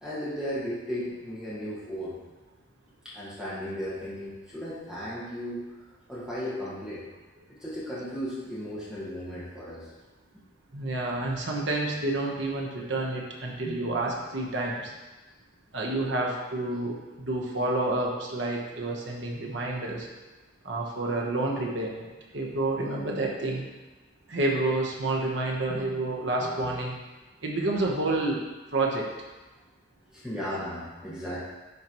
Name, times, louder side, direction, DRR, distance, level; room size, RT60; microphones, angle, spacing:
voice 1, 0.0-2.2 3.1-5.6 6.1-7.0 7.6-9.9 13.6-13.9 25.7-25.8 26.4-26.7 30.1-31.4, equal, 5° right, -9 dB, 1.7 m, -35 dB
voice 2, 10.7-14.9 15.7-20.1 20.6-22.1 22.3-23.7 24.3-27.0 27.4-28.4 28.7-29.1, right 2 dB, 65° right, -1 dB, 1.1 m, -29 dB
11.0 x 4.6 x 3.1 m, 1.2 s
head